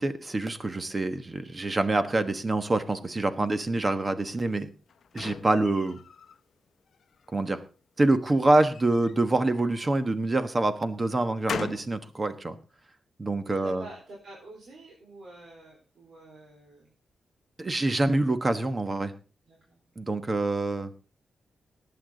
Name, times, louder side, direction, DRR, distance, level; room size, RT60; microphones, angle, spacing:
voice 1, 0.0-4.7 5.1-6.0 7.3-7.6 8.0-12.6 13.2-13.8 17.6-19.1 20.0-20.9, right 2 dB, 25° right, 10 dB, 1.2 m, -26 dB
sound 1, 4.5-6.4 6.9-7.6 8.6-10.1 10.6-12.0, left 7 dB, 60° left, 0.8 m, -41 dB
voice 2, 13.4-16.9 19.4-19.8, right 2 dB, 65° right, -2 dB, 4.4 m, -47 dB
18.0 x 8.9 x 3.9 m, 0.35 s
wide cardioid pair, 150°, 0 cm